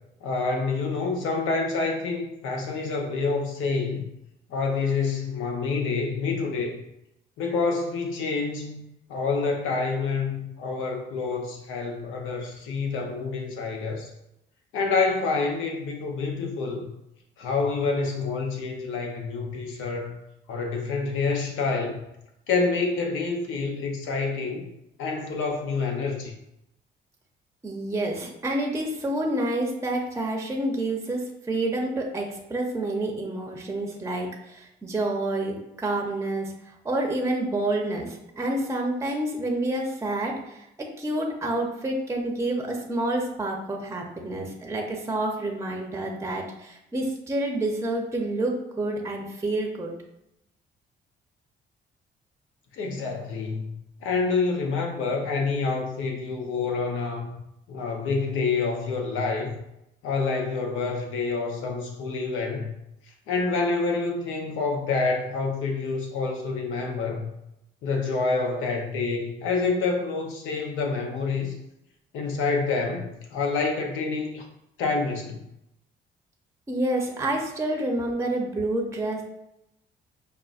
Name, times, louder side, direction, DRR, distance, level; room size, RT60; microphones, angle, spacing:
voice 1, 0.2-4.1 4.5-6.8 7.4-8.8 9.1-14.1 14.7-16.9 17.4-20.2 20.5-22.0 22.5-24.7 25.0-26.3 52.7-57.3 57.7-59.5 60.0-62.7 63.3-67.3 67.8-71.6 72.1-74.4 74.8-75.4, left 4 dB, 85° left, 2 dB, 0.7 m, -27 dB
voice 2, 27.6-49.9 76.7-79.2, right 1 dB, 15° right, 1 dB, 0.6 m, -28 dB
5.2 x 2.1 x 2.4 m, 0.84 s
cardioid pair, 90°, 20 cm